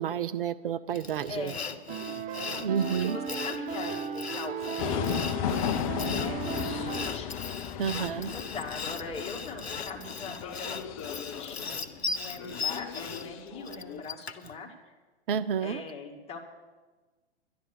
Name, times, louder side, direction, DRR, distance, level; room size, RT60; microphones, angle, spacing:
voice 1, 0.0-1.5 2.6-3.2 7.8-8.3 15.3-15.8, right 8 dB, 60° right, 14 dB, 0.5 m, -30 dB
Sawing, 1.0-14.5, left 5 dB, 80° left, 0.8 m, -38 dB
voice 2, 1.3-1.8 2.3-5.2 6.1-7.3 8.3-10.7 11.4-14.7 15.6-16.4, left 4 dB, 20° left, 1 dB, 2.0 m, -41 dB
sound 1, 1.9-7.1, right 7 dB, 25° right, 0.7 m, -36 dB
sound 2, 4.8-14.0, left 9 dB, 35° left, 0.6 m, -35 dB
11.0 x 11.0 x 6.6 m, 1.3 s
figure-of-eight pair, 105°, 31 cm